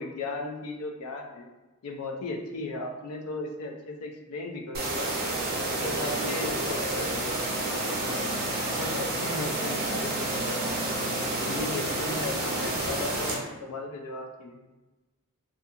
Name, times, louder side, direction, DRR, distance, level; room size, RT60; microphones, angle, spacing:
voice 1, 0.0-1.5 1.8-5.1 5.5-7.4 7.9-8.2 8.5-10.6 11.4-14.6, left 2 dB, 85° left, 2 dB, 0.4 m, -36 dB
sound 1, 4.7-13.4, right 2 dB, 45° right, 0.5 m, -29 dB
2.6 x 2.4 x 2.4 m, 1.1 s
head